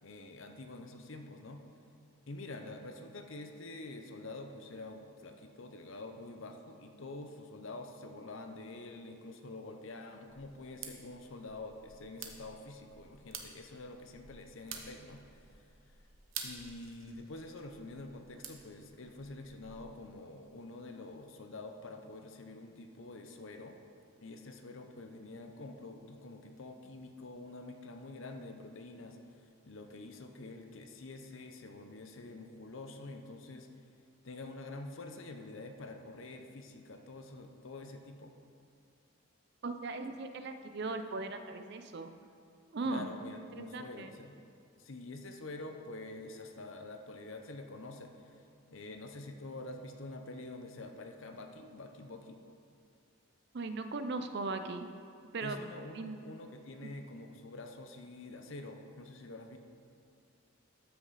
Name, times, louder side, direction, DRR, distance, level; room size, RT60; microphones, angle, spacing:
voice 1, 0.0-1.6 2.3-16.0 16.4-23.8 24.2-33.7 34.2-38.3 42.8-44.4 44.8-52.4 55.4-59.6, left 2 dB, 65° left, 5 dB, 0.7 m, -47 dB
sound 1, 10.3-20.0, right 6 dB, 70° right, 0.9 m, -50 dB
voice 2, 39.6-42.1 42.7-43.1 43.5-44.1 53.5-54.9 55.3-55.6 55.9-56.2 56.8-56.9, right 3 dB, 50° right, 8 dB, 0.5 m, -38 dB
13.0 x 6.1 x 4.1 m, 2.4 s
head